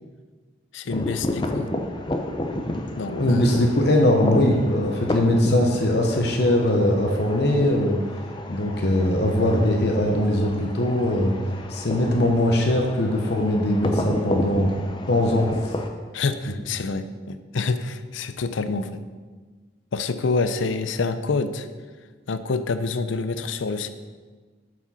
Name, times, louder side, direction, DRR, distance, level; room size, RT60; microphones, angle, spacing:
voice 1, 0.7-1.7 3.0-3.7 16.1-19.0 19.9-21.7 22.3-23.9, left 4 dB, 85° left, 11 dB, 0.5 m, -27 dB
sound 1, 0.9-15.9, left 1 dB, 25° left, 0.6 m, -32 dB
voice 2, 3.1-8.0 8.5-11.3 11.7-14.7 15.1-15.5, left 1 dB, 55° left, 1 dB, 0.9 m, -21 dB
7.2 x 6.2 x 5.6 m, 1.4 s
head